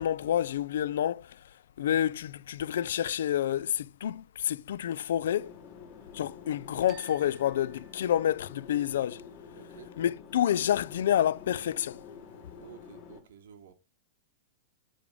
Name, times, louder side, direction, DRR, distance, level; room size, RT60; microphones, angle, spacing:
voice 1, 0.0-1.4 1.8-5.5 6.1-9.2 10.0-12.0, left 10 dB, 75° left, 0.3 m, -28 dB
sound 1, 5.3-13.2, left 6 dB, 25° left, 1.1 m, -49 dB
sound 2, 6.9-8.8, right 10 dB, 20° right, 0.4 m, -56 dB
voice 2, 9.6-9.9 12.6-13.7, right 8 dB, 75° right, 1.2 m, -51 dB
6.8 x 4.9 x 3.4 m
supercardioid pair, 180°, 0 cm